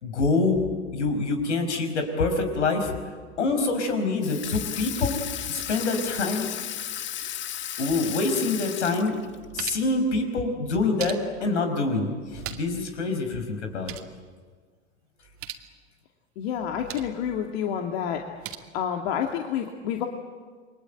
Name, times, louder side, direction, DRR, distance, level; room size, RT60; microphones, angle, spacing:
voice 1, 0.0-2.9 3.4-5.2 5.5-6.5 7.8-9.2 9.5-14.0, left 3 dB, 80° left, 6 dB, 5.2 m, -26 dB
Water tap faucet / Sink (filling or washing), 4.2-9.5, left 10 dB, 35° left, 1.4 m, -34 dB
sound 1, 9.1-10.0 10.7-11.6 12.2-12.9 13.1-13.2 13.6-14.2 15.2-15.7 16.5-17.2 18.1-18.6, right 11 dB, 40° right, 2.4 m, -40 dB
voice 2, 16.4-18.2 18.7-20.1, left 8 dB, 60° left, 3 dB, 2.5 m, -29 dB
28.5 x 23.0 x 9.1 m, 1.5 s
hypercardioid pair, 90°, 35 cm